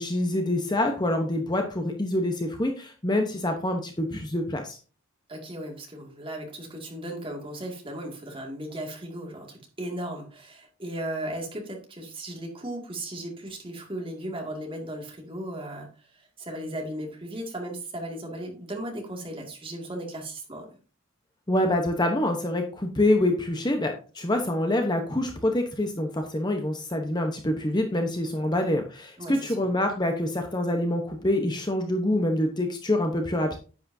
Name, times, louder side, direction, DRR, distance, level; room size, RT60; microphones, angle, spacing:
voice 1, 0.0-4.8 21.5-33.6, left 1 dB, 20° left, 4 dB, 1.0 m, -26 dB
voice 2, 5.3-20.7 29.2-29.7, right 1 dB, 25° right, 1 dB, 2.2 m, -36 dB
10.0 x 8.4 x 2.7 m, 0.36 s
head